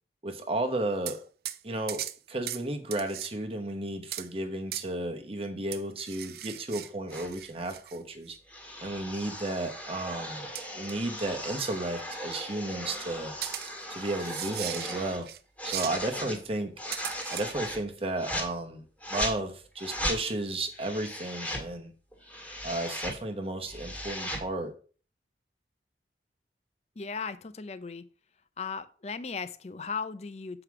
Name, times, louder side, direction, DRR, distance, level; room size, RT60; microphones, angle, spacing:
voice 1, 0.2-1.2 1.6-8.4 8.8-13.3 13.9-15.3 15.6-16.7 17.3-18.8 19.1-21.9 22.6-24.7, right 2 dB, 35° right, 1.0 m, -33 dB
sound 1, 1.1-1.2 1.5-1.6 1.9-2.2 2.5-2.6 2.9-3.3 4.1-4.3 4.7-4.9 5.7-8.0 8.3-8.4 10.6-10.9 11.2-11.3 13.4-15.4 15.7-16.0 16.9-17.5, right 13 dB, 60° right, 0.5 m, -38 dB
sound 2, 7.1-7.3 8.5-15.2 15.6-16.4 16.8-17.8 18.2-18.5 19.0-19.4 19.8-20.2 20.7-21.7 22.1-23.2 23.5-24.5, equal, 10° left, 1.8 m, -37 dB
voice 2, 27.0-28.1 28.6-30.6, left 5 dB, 40° left, 0.5 m, -37 dB
8.0 x 4.9 x 4.8 m
head